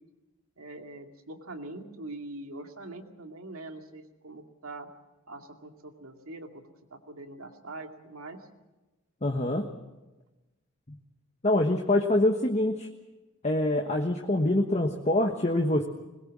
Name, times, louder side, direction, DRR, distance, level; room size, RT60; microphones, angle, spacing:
voice 1, 0.6-4.9 5.3-6.6 6.9-8.5, right 2 dB, 80° right, 4 dB, 2.4 m, -43 dB
voice 2, 9.2-9.7 11.4-12.9 13.4-15.8, left 1 dB, 30° left, 3 dB, 1.3 m, -25 dB
21.5 x 21.0 x 7.5 m, 1.1 s
head